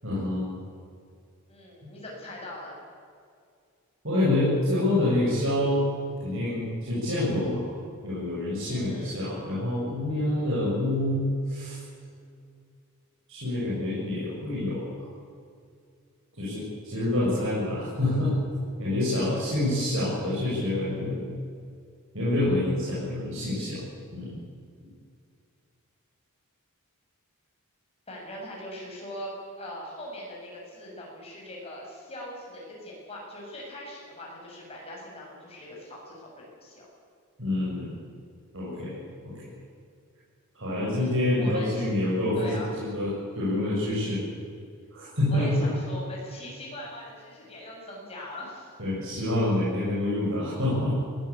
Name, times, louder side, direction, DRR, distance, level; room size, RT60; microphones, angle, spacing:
voice 1, 0.0-0.4 4.0-5.8 6.2-7.6 8.0-11.8 13.3-15.1 16.3-18.3 18.8-21.3 22.1-23.8 24.1-24.3 24.8-24.9 37.4-37.9 38.5-39.5 40.5-44.2 44.9-45.7 48.8-50.9, left 1 dB, 60° right, -8 dB, 7.7 m, -27 dB
voice 2, 1.5-2.8 8.7-9.4 10.1-10.6 19.1-19.8 28.1-36.9 41.0-41.9 42.4-42.7 45.3-48.7, left 1 dB, 25° left, -3 dB, 7.4 m, -41 dB
21.5 x 17.5 x 8.8 m, 2.3 s
head